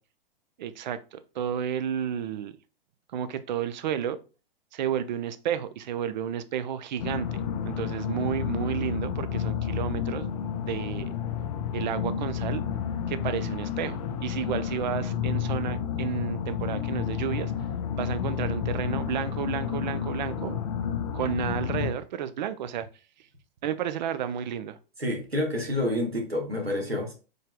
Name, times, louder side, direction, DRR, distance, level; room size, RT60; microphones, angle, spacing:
voice 1, 0.6-2.6 3.1-4.2 4.7-10.3 10.6-11.1 11.7-12.6 13.1-17.5 18.0-20.6 21.1-22.9 23.6-24.8, right 9 dB, 50° right, 0.4 m, -31 dB
sound 1, 7.0-21.9, left 8 dB, 35° left, 0.4 m, -31 dB
voice 2, 25.0-27.1, left 1 dB, 90° right, 1.1 m, -28 dB
3.9 x 3.3 x 2.2 m
figure-of-eight pair, 105°, 30 cm